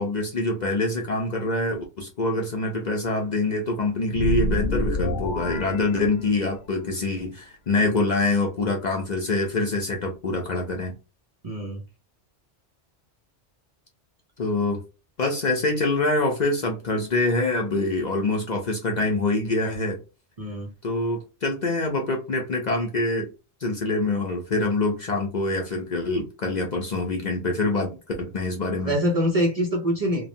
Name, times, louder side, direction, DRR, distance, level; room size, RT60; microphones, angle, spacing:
voice 1, 0.0-10.9 14.4-14.8 15.2-20.0 20.8-23.3 23.6-27.9 28.2-29.0, left 2 dB, 45° left, 0.6 m, -25 dB
sound 1, 4.1-6.7, equal, 85° left, 0.9 m, -27 dB
voice 2, 11.4-11.8 20.4-20.7 28.8-30.3, equal, 40° right, 0.6 m, -24 dB
3.0 x 2.2 x 2.6 m
omnidirectional pair, 1.2 m